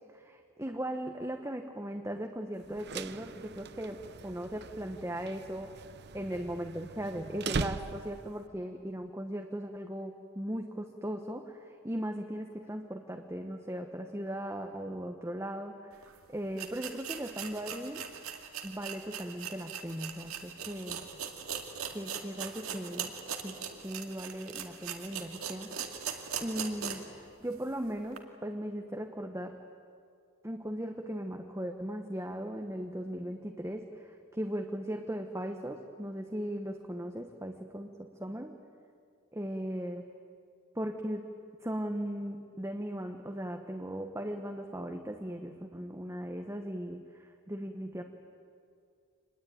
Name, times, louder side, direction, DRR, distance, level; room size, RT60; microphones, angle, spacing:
voice 1, 0.1-5.7 6.1-18.1 18.6-21.0 21.9-23.1 23.4-25.7 26.4-29.6 30.4-38.6 39.3-40.0 40.7-41.2 41.6-48.0, equal, 10° right, 4 dB, 1.1 m, -38 dB
sound 1, 2.6-8.4, right 4 dB, 50° right, 0.7 m, -40 dB
sound 2, 16.0-16.1 16.5-27.2 27.5-27.6 28.1-28.2, right 7 dB, 75° right, 2.3 m, -40 dB
26.0 x 20.5 x 9.3 m, 2.3 s
head